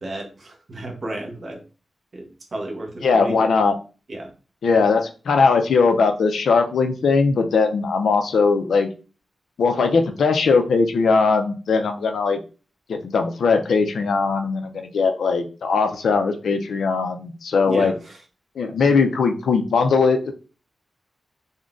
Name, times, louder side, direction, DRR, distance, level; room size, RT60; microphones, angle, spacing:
voice 1, 0.0-1.6 2.1-3.5 4.1-4.3 17.7-18.2, right 1 dB, 40° right, 1 dB, 0.7 m, -32 dB
voice 2, 3.0-3.7 4.6-8.9 9.6-12.4 12.9-17.9 18.6-20.3, left 4 dB, 90° left, 6 dB, 0.4 m, -19 dB
3.7 x 2.1 x 2.4 m, 0.35 s
wide cardioid pair, 165°, 0 cm